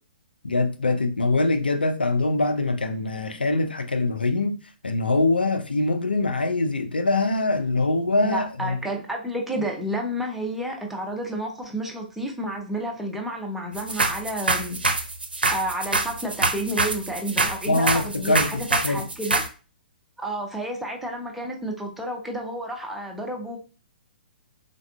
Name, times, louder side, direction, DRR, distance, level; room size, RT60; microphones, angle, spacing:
voice 1, 0.4-4.6 4.8-8.8 17.7-19.0, left 2 dB, 80° left, 0.4 m, -23 dB
voice 2, 8.1-14.8 15.5-19.4 20.2-23.6, right 1 dB, 5° right, 0.4 m, -30 dB
sound 1, 13.7-19.5, right 3 dB, 80° right, 0.4 m, -25 dB
3.6 x 2.2 x 2.2 m
figure-of-eight pair, 120°, 5 cm